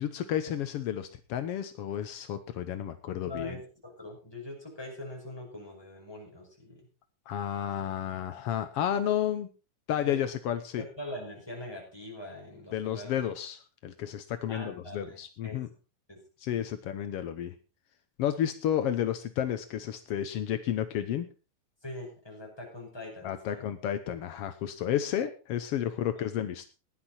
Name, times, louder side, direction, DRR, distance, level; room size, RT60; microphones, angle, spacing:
voice 1, 0.0-3.6 7.3-9.5 9.9-10.8 12.7-15.7 16.4-17.5 18.2-21.3 23.2-26.7, left 10 dB, 80° left, 10 dB, 1.3 m, -31 dB
voice 2, 3.2-6.8 10.0-10.2 10.8-13.1 14.5-15.2 15.4-15.6 16.1-16.2 16.5-16.6 21.8-23.6 26.0-26.2, left 1 dB, 5° left, -1 dB, 5.7 m, -42 dB
15.5 x 11.0 x 4.3 m, 0.31 s
omnidirectional pair, 3.9 m